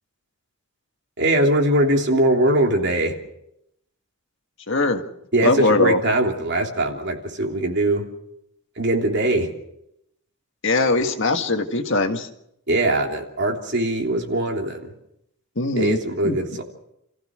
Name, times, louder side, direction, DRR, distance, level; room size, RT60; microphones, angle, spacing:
voice 1, 1.2-3.1 5.3-8.1 8.8-9.5 12.7-14.9 15.7-16.6, right 1 dB, 50° right, 2 dB, 3.1 m, -21 dB
voice 2, 4.7-5.0 5.4-6.0 10.6-12.3 15.6-16.0 16.2-16.4, left 2 dB, 55° left, 6 dB, 1.8 m, -20 dB
29.5 x 15.0 x 6.3 m, 0.79 s
head